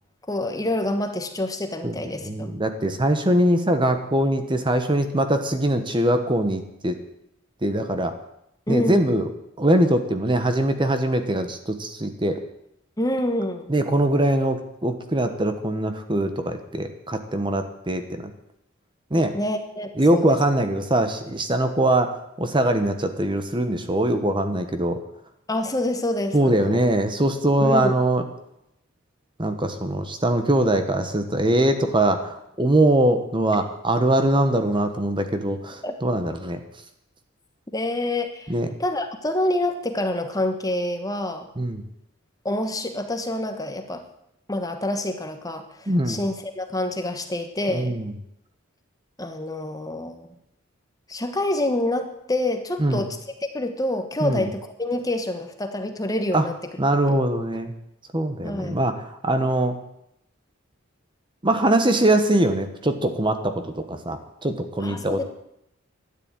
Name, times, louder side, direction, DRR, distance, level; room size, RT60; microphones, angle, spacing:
voice 1, 0.3-2.5 8.7-9.1 13.0-13.7 19.3-20.4 25.5-26.8 27.6-27.9 35.8-35.9 37.7-38.5 38.8-41.5 42.4-44.0 44.5-48.0 49.2-50.3 51.1-53.2 53.5-56.5 57.1-57.2 58.4-58.8 64.8-65.2, left 1 dB, 15° left, 6 dB, 1.3 m, -27 dB
voice 2, 2.2-7.0 7.6-8.1 8.7-9.3 9.6-12.4 13.7-18.3 19.1-19.4 20.0-25.0 26.3-28.2 29.4-36.6 38.5-38.7 41.6-41.8 45.9-46.2 47.7-48.1 52.8-53.1 54.2-54.5 56.3-56.5 56.8-57.7 58.1-59.8 61.4-65.2, right 1 dB, 25° right, 8 dB, 1.2 m, -22 dB
12.5 x 10.0 x 8.8 m, 0.80 s
head